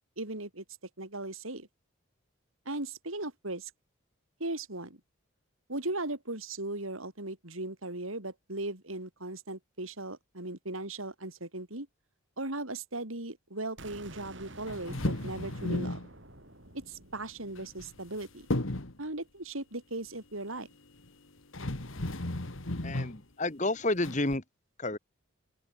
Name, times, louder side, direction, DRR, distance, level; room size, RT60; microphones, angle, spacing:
voice 1, 0.2-0.6 1.0-1.7 2.6-3.7 4.4-5.0 5.7-11.9 12.4-16.0 16.9-18.5 19.0-20.7, right 2 dB, 80° right, 5.2 m, -38 dB
sound 1, 13.8-19.6, right 2 dB, 60° right, 5.3 m, -51 dB
sound 2, 14.7-16.1 17.6-18.2 18.5-19.0 21.0-21.1 21.5-23.2 24.0-24.4, left 1 dB, 70° left, 2.0 m, -34 dB
voice 2, 22.8-24.4 24.8-25.0, left 2 dB, 35° left, 1.6 m, -30 dB
open air
head